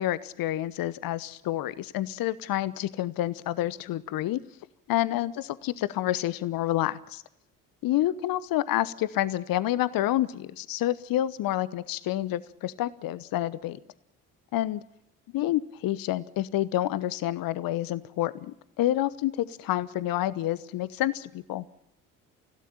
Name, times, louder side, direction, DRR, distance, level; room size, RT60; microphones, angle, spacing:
voice 1, 0.0-4.4 4.9-7.2 7.8-13.8 14.5-14.8 15.3-21.7, left 14 dB, 50° left, 18 dB, 1.1 m, -28 dB
29.5 x 16.5 x 8.9 m, 0.81 s
figure-of-eight pair, 50°, 43 cm